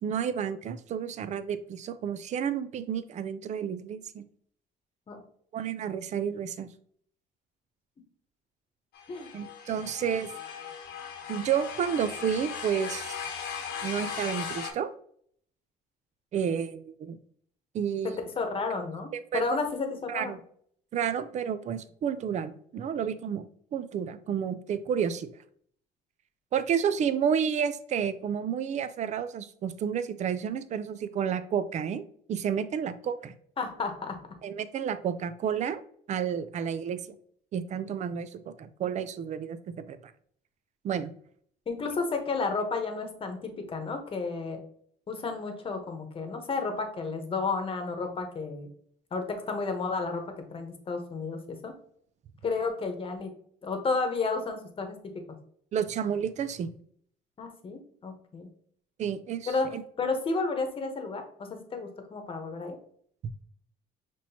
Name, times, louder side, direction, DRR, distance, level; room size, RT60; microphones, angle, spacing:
voice 1, 0.0-4.2 5.5-6.7 9.3-10.3 11.3-13.2 13.8-14.9 16.3-17.2 17.7-18.2 19.3-19.4 20.1-20.4 20.9-23.5 23.7-25.3 26.5-33.3 34.4-35.8 36.1-37.0 37.5-40.1 40.8-41.1 55.7-56.7 59.0-59.8, right 8 dB, 45° right, 12 dB, 0.4 m, -31 dB
sound 1, 8.9-14.7, left 7 dB, 85° left, 1.0 m, -38 dB
voice 2, 18.4-20.3 33.6-34.2 41.7-44.6 45.1-48.7 49.1-50.2 50.5-51.7 52.4-53.3 53.6-54.9 57.4-58.5 59.5-59.7 60.0-62.8, left 4 dB, 30° left, 5 dB, 1.0 m, -32 dB
5.9 x 3.0 x 2.8 m, 0.62 s
cardioid pair, 110°, 17 cm